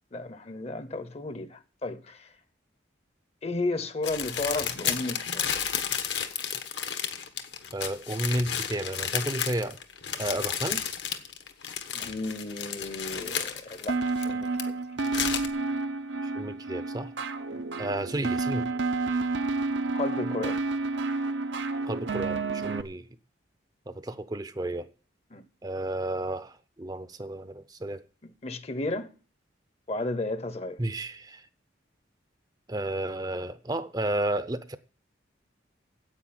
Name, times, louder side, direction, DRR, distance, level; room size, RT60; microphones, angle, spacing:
voice 1, 0.1-2.3 3.4-5.5 11.9-14.8 17.5-17.6 19.9-20.6 25.3-25.4 28.2-29.1 29.9-30.8, left 2 dB, 35° left, 0.9 m, -33 dB
sound 1, 4.0-14.6 15.0-15.5, left 8 dB, 70° left, 1.3 m, -32 dB
voice 2, 7.7-9.8 10.2-10.8 16.2-17.1 17.8-18.7 21.9-23.1 23.9-24.9 25.6-28.0 30.8-31.4 32.7-34.8, right 1 dB, 20° right, 0.6 m, -32 dB
sound 2, 13.9-22.8, right 3 dB, 70° right, 0.8 m, -30 dB
10.0 x 8.4 x 8.6 m
head